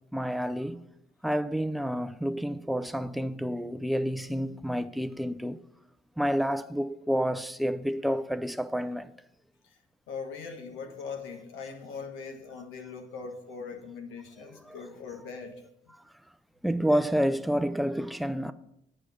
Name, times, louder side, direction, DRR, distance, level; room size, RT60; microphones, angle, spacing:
voice 1, 0.1-0.8 1.2-5.6 6.2-9.1 14.5-14.8 16.6-18.5, equal, ahead, 0.4 m, -29 dB
voice 2, 10.1-15.9, left 5 dB, 90° left, 1.4 m, -41 dB
8.4 x 5.0 x 7.6 m
cardioid pair, 90°, 20 cm